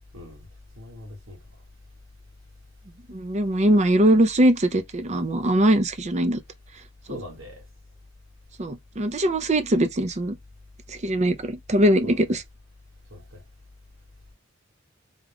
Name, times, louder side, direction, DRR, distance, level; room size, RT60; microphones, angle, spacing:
voice 1, 0.1-0.5 0.8-1.4 7.1-7.6 12.0-12.4 13.1-13.4, left 1 dB, 85° right, 2.0 m, -41 dB
voice 2, 3.1-6.4 8.6-10.4 10.9-12.4, right 1 dB, 35° right, 0.6 m, -21 dB
3.6 x 2.3 x 3.5 m
head